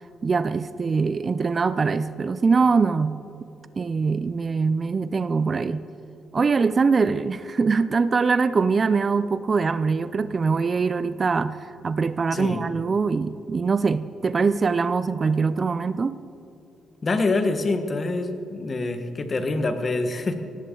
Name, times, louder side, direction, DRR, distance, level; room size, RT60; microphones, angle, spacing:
voice 1, 0.2-3.2 3.8-5.9 6.3-16.2, right 4 dB, 35° right, 14 dB, 0.5 m, -23 dB
voice 2, 12.3-12.6 17.0-20.3, left 3 dB, 35° left, 7 dB, 1.5 m, -25 dB
17.5 x 16.5 x 3.9 m, 2.7 s
cardioid pair, 90°, 0 cm